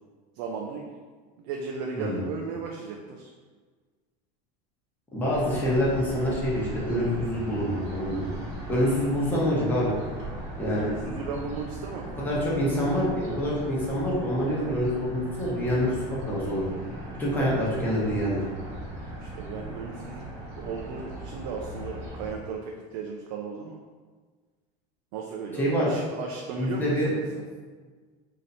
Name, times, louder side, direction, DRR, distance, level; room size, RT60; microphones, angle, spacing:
voice 1, 0.3-0.9 1.4-3.3 10.6-12.1 19.2-20.2 20.6-23.8 25.1-27.4, right 5 dB, 60° right, 1 dB, 0.4 m, -36 dB
voice 2, 5.1-8.2 8.7-10.0 10.6-10.9 12.2-16.0 16.3-16.6 17.2-18.4 25.6-25.9 26.6-27.1, equal, 10° left, -6 dB, 1.0 m, -26 dB
sound 1, 5.3-22.3, right 1 dB, 35° right, 1.1 m, -38 dB
3.1 x 2.8 x 4.0 m, 1.5 s
supercardioid pair, 155°, 19 cm